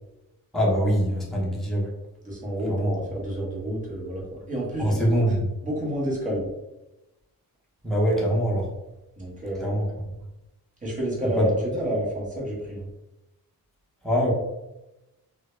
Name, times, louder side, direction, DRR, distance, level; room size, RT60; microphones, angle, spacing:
voice 1, 0.5-1.9 2.7-3.0 4.8-5.4 7.8-8.7 9.6-9.8 11.4-11.5 14.0-14.3, equal, ahead, -4 dB, 0.7 m, -23 dB
voice 2, 2.2-5.4 5.6-6.5 9.2-9.8 10.8-12.9, equal, 20° right, -5 dB, 1.1 m, -29 dB
3.5 x 2.2 x 3.0 m, 0.97 s
wide cardioid pair, 160°, 36 cm